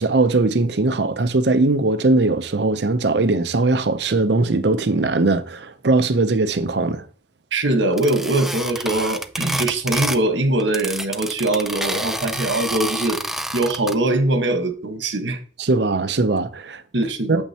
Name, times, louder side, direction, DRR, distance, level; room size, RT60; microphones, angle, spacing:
voice 1, 0.0-7.1 15.6-16.8 17.3-17.4, right 3 dB, 70° right, 0.7 m, -20 dB
voice 2, 7.5-13.2 13.5-15.4 16.9-17.4, right 2 dB, 90° right, 1.4 m, -22 dB
sound 1, 8.0-10.3 10.6-13.9, right 1 dB, ahead, 0.4 m, -28 dB
8.7 x 7.3 x 2.9 m
head